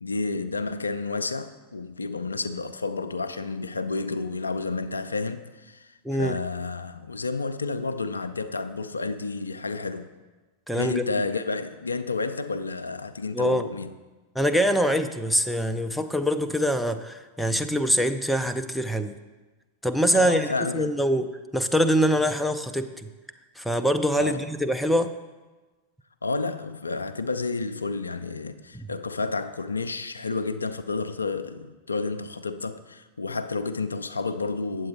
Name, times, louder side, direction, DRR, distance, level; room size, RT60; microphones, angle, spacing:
voice 1, 0.0-10.1 10.7-13.9 20.1-20.9 24.2-24.4 26.2-34.9, left 3 dB, 75° left, 0.4 m, -30 dB
voice 2, 6.0-6.4 10.7-11.0 13.3-13.7 14.4-19.1 19.8-21.3 21.5-23.1 23.6-25.1 28.7-28.9, equal, ahead, 0.4 m, -24 dB
8.5 x 7.7 x 4.0 m
figure-of-eight pair, 90°, 0 cm